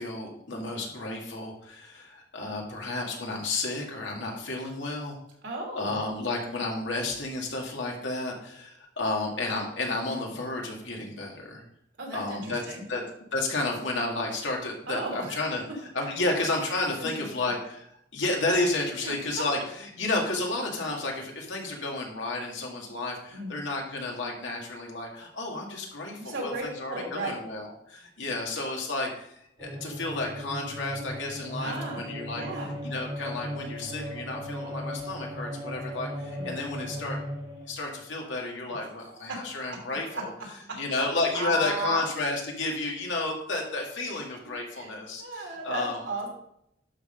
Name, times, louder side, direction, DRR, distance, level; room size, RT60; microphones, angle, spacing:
voice 1, 0.0-5.2 5.8-11.6 12.1-13.0 13.3-32.4 32.8-37.2 37.7-40.3 40.8-46.0, left 2 dB, 85° left, 0 dB, 2.2 m, -32 dB
voice 2, 5.4-6.0 12.0-12.9 14.9-15.4 17.0-17.2 19.0-19.4 23.3-23.5 26.2-27.4 31.6-32.0 32.3-32.8 36.4-36.6 39.0-39.4 40.1-40.2 41.3-42.0 44.8-44.9 45.2-46.3, right 2 dB, 85° right, -1 dB, 2.8 m, -35 dB
sound 1, 29.6-37.8, equal, 25° right, 2.3 m, -37 dB
11.5 x 4.0 x 5.2 m, 0.75 s
head